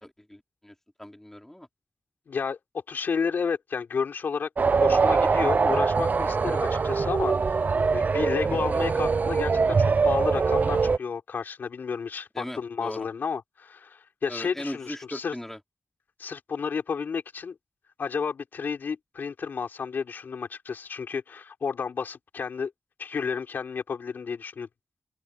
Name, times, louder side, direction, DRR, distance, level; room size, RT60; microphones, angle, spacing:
voice 1, 0.0-1.7 12.3-13.1 14.3-15.6, left 1 dB, 10° left, 4.1 m, -39 dB
voice 2, 2.3-2.6 2.9-4.5 4.8-15.3 16.2-17.5 18.0-22.7 23.0-24.7, left 6 dB, 80° left, 4.3 m, -31 dB
sound 1, 4.6-11.0, right 4 dB, 55° right, 0.6 m, -23 dB
open air
cardioid pair, 45°, 3 cm